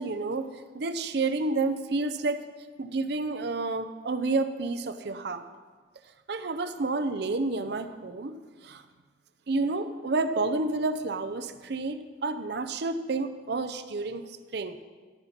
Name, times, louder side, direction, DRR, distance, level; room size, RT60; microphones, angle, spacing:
voice 1, 0.0-2.4 2.8-5.4 6.3-8.8 9.5-14.8, right 3 dB, 60° right, 10 dB, 0.6 m, -30 dB
14.0 x 5.6 x 5.9 m, 1.5 s
head